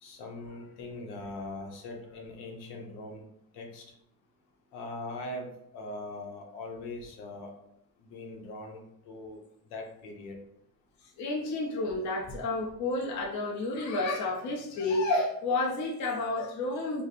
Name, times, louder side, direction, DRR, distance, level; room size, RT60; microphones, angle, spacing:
voice 1, 0.0-3.2 3.5-3.8 4.7-7.5 8.0-9.4 9.7-10.4, left 2 dB, 90° left, 2 dB, 0.9 m, -41 dB
voice 2, 11.2-17.0, left 2 dB, 50° left, -2 dB, 0.8 m, -30 dB
3.4 x 2.1 x 4.2 m, 0.76 s
cardioid pair, 155°, 38 cm